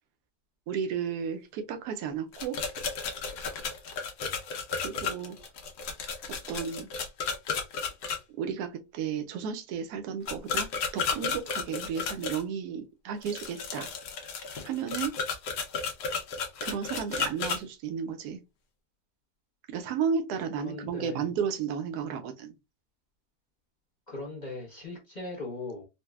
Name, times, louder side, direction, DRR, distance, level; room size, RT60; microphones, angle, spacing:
voice 1, 0.7-2.6 4.7-5.4 6.5-6.9 8.3-13.9 14.6-15.2 16.6-18.4 19.7-22.5, right 7 dB, 75° right, 1.0 m, -33 dB
sound 1, 2.3-8.2 10.3-12.4 13.2-17.6, left 5 dB, 75° left, 1.3 m, -33 dB
voice 2, 20.6-21.3 24.1-25.9, left 2 dB, 35° left, 0.7 m, -39 dB
4.0 x 2.2 x 2.2 m
omnidirectional pair, 1.8 m